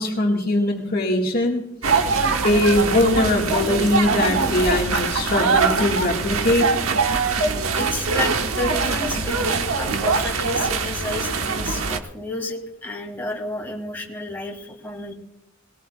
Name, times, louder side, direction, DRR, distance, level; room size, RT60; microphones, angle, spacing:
voice 1, 0.0-1.6 2.4-6.7, left 1 dB, 45° left, 0 dB, 1.6 m, -21 dB
sound 1, 1.8-12.0, right 4 dB, 85° right, 1.2 m, -22 dB
voice 2, 7.3-15.1, left 2 dB, 10° left, 0 dB, 2.1 m, -31 dB
20.0 x 17.5 x 2.3 m, 0.82 s
head